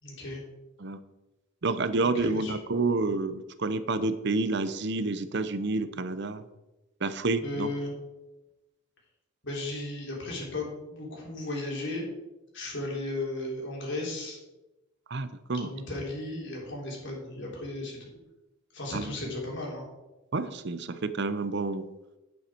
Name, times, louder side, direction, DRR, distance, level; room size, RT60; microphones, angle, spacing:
voice 1, 0.0-0.4 2.0-2.5 7.4-7.9 9.4-12.1 12.5-14.4 15.6-18.1 18.7-19.8, left 2 dB, 60° left, -2 dB, 3.6 m, -35 dB
voice 2, 1.6-6.4 7.0-7.7 15.1-15.7 18.9-19.1 20.3-21.8, right 3 dB, 55° right, 12 dB, 0.7 m, -29 dB
9.6 x 9.4 x 4.5 m, 1.0 s
head